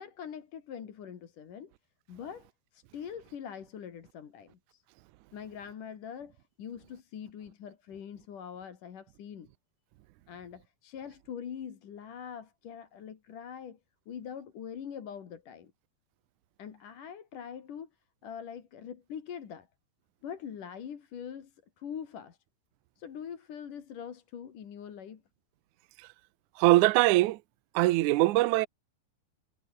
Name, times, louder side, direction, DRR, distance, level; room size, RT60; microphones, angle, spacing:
voice 1, 0.0-1.7 2.1-4.8 5.3-9.5 10.3-13.8 14.1-15.7 16.6-17.9 18.2-19.7 20.2-22.4 23.0-25.2, left 8 dB, 55° left, 3.8 m, -43 dB
voice 2, 26.6-27.4 27.7-28.7, right 18 dB, 90° right, 1.7 m, -22 dB
omnidirectional pair, 4.5 m